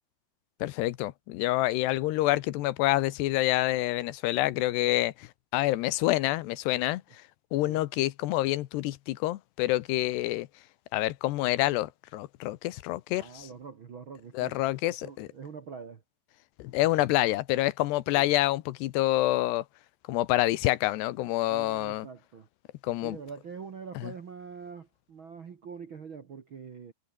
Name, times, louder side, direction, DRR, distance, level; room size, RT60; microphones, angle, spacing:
voice 1, 0.6-7.0 7.5-10.5 10.9-13.2 14.3-15.3 16.6-19.6 20.1-22.1 22.8-23.2, left 17 dB, 85° left, 3.1 m, -27 dB
voice 2, 13.1-14.6 15.0-16.0 18.1-18.3 21.5-22.5 23.0-26.9, right 6 dB, 50° right, 1.5 m, -44 dB
omnidirectional pair, 4.7 m